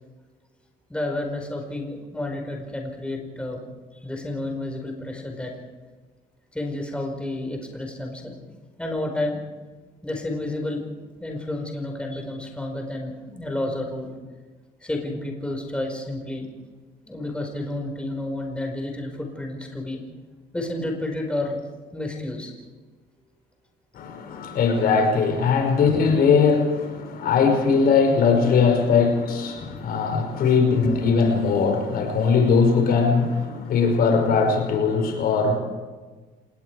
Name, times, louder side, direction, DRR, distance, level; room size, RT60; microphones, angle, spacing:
voice 1, 0.9-3.6 4.0-5.5 6.5-8.4 8.8-9.4 10.0-10.9 11.2-14.1 14.8-16.5 17.1-20.0 20.5-21.6 21.9-22.5 24.3-24.4, left 1 dB, 5° left, 2 dB, 4.9 m, -30 dB
voice 2, 23.9-35.6, left 5 dB, 65° left, 4 dB, 5.4 m, -20 dB
27.5 x 20.5 x 4.8 m, 1.3 s
cardioid pair, 110°, 17 cm